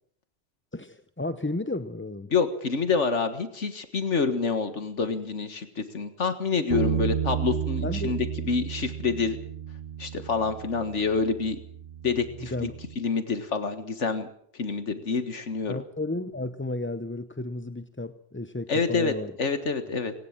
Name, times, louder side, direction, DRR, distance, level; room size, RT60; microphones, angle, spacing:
voice 1, 0.7-2.3 7.8-8.1 12.4-12.7 15.7-19.3, left 2 dB, 15° left, 11 dB, 0.6 m, -33 dB
voice 2, 2.3-9.4 10.0-11.6 12.0-12.5 13.0-14.3 14.5-15.8 18.7-19.1 19.4-20.1, left 4 dB, 85° left, 9 dB, 2.0 m, -27 dB
Bass guitar, 6.7-13.0, right 9 dB, 50° right, 1.1 m, -33 dB
20.0 x 18.5 x 7.4 m, 0.64 s
omnidirectional pair, 1.2 m